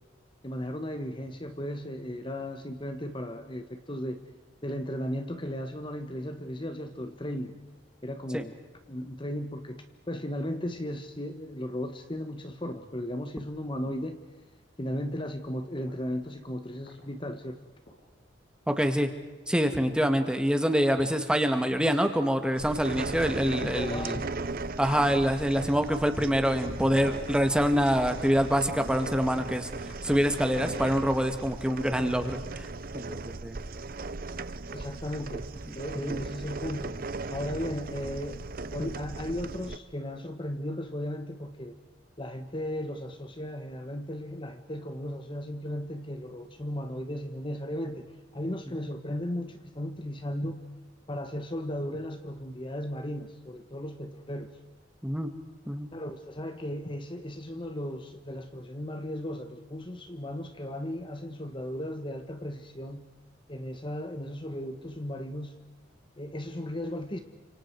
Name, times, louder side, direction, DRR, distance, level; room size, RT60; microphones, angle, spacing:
voice 1, 0.4-4.2 4.6-7.6 8.0-8.6 8.9-14.2 14.8-17.6 23.6-24.4 34.7-35.5 35.7-37.0 37.3-41.8 42.2-48.1 48.3-50.6 51.1-54.5 55.9-63.1 63.5-65.6 66.2-67.2, left 1 dB, 25° left, 8 dB, 1.3 m, -36 dB
sound 1, 15.9-16.0 16.9-17.0 17.9-18.0 18.9-19.0 19.9-20.0 20.9-21.0 21.9-22.0 22.9-23.0 23.9-24.0 24.9-25.1 25.9-26.1 26.9-27.1 27.9-28.1 28.9-29.1 29.9-30.0 30.9-31.0, left 3 dB, 50° left, 6.5 m, -47 dB
voice 2, 18.7-19.1 19.5-24.2 24.8-32.7 32.9-33.6 35.7-35.8 36.1-36.2 55.0-55.3 55.7-55.9, equal, 5° right, 7 dB, 1.8 m, -26 dB
sound 2, 22.6-39.8, right 3 dB, 45° right, 0.8 m, -37 dB
30.0 x 26.5 x 4.7 m, 1.2 s
head